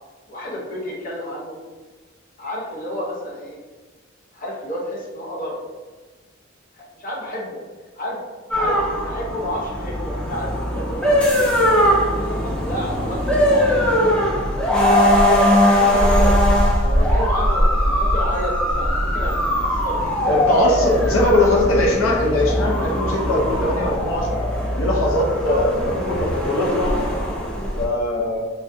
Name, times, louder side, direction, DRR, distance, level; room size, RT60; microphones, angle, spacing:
voice 1, 0.3-1.6 2.4-3.6 4.3-5.6 6.9-7.6 8.0-8.2 8.5-8.8 9.0-11.3 11.6-14.5 15.3-16.4 16.8-19.3 19.6-20.3 20.9-21.2 25.4-25.6, equal, 45° left, -4 dB, 0.8 m, -30 dB
sound 1, 8.5-27.9, equal, 5° left, 0.4 m, -20 dB
voice 2, 20.3-24.4 24.8-26.9 27.8-28.5, left 1 dB, 85° left, -2 dB, 0.5 m, -20 dB
3.2 x 2.3 x 2.6 m, 1.3 s
head